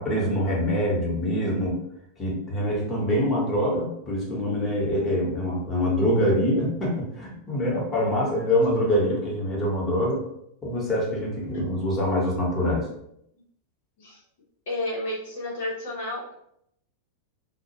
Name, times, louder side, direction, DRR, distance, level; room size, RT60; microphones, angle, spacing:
voice 1, 0.0-1.8 2.2-10.2 10.6-12.9, equal, 25° left, -4 dB, 0.9 m, -25 dB
voice 2, 14.7-16.3, left 1 dB, 70° left, -4 dB, 0.7 m, -31 dB
2.2 x 2.0 x 2.8 m, 0.75 s
hypercardioid pair, 105°, 0 cm